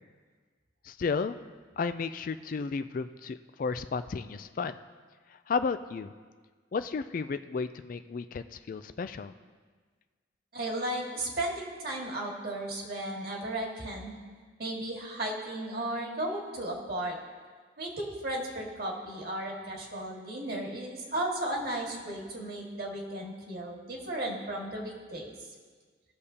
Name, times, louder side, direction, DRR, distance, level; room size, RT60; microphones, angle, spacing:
voice 1, 0.8-1.4 1.8-4.8 5.3-6.1 6.7-9.3, left 5 dB, 45° left, 11 dB, 0.3 m, -33 dB
voice 2, 10.5-14.1 14.6-17.2 17.8-25.3, right 1 dB, 55° right, -1 dB, 1.9 m, -35 dB
18.0 x 6.7 x 2.8 m, 1.5 s
head